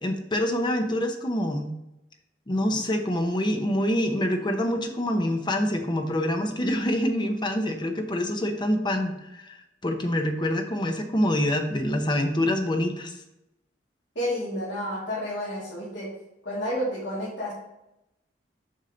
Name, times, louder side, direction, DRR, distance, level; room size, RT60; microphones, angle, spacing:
voice 1, 0.0-1.8 2.5-9.6 9.8-13.1, left 1 dB, 25° left, 5 dB, 0.8 m, -26 dB
voice 2, 14.1-16.1 16.4-17.5, equal, 70° left, -9 dB, 2.6 m, -30 dB
6.6 x 5.4 x 3.9 m, 0.89 s
head